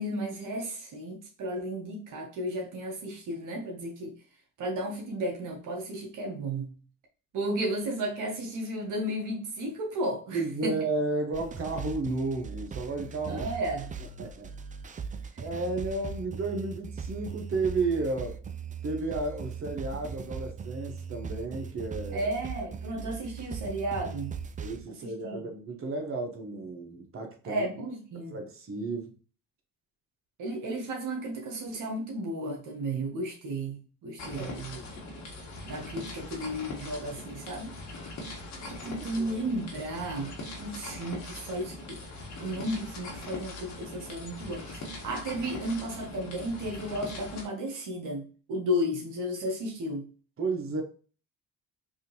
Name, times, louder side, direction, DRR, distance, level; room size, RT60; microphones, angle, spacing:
voice 1, 0.0-4.2 4.6-6.8 7.3-10.7 13.3-13.9 22.1-24.4 25.0-25.5 27.4-28.4 30.4-34.8 35.7-37.7 38.6-42.0 42.4-50.1, right 1 dB, 65° right, 0.9 m, -34 dB
voice 2, 10.3-13.5 14.2-14.5 15.4-18.4 18.8-22.3 24.6-27.7 28.3-29.1 34.3-34.5 38.8-39.5 50.4-50.8, right 3 dB, 40° right, 1.0 m, -33 dB
sound 1, 11.3-24.8, right 6 dB, 25° right, 0.4 m, -39 dB
sound 2, 34.2-47.5, left 2 dB, 55° left, 1.4 m, -41 dB
3.6 x 2.7 x 2.9 m
supercardioid pair, 70°, 34 cm